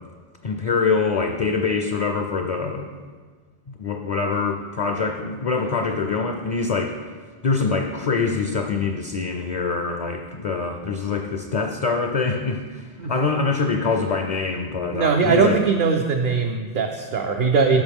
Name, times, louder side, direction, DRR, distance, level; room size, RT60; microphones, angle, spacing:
voice 1, 0.4-2.9 3.7-7.0 7.4-15.6, left 4 dB, 50° left, 4 dB, 0.5 m, -24 dB
voice 2, 14.9-17.8, right 5 dB, 65° right, 3 dB, 0.7 m, -20 dB
8.9 x 6.1 x 3.5 m, 1.5 s
omnidirectional pair, 1.0 m